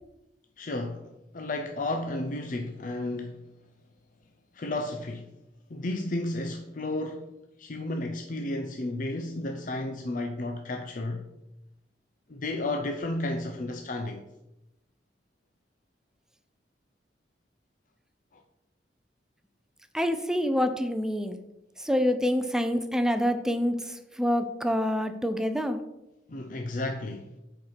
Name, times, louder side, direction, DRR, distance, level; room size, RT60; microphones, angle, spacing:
voice 1, 0.6-1.1 1.3-3.5 4.5-5.3 5.7-7.3 7.6-11.3 12.3-14.2 18.3-18.4 26.3-27.3, left 2 dB, 50° left, 0.6 m, -32 dB
voice 2, 19.9-21.4 21.8-25.8, equal, 5° right, 0.5 m, -27 dB
7.9 x 4.5 x 5.7 m
head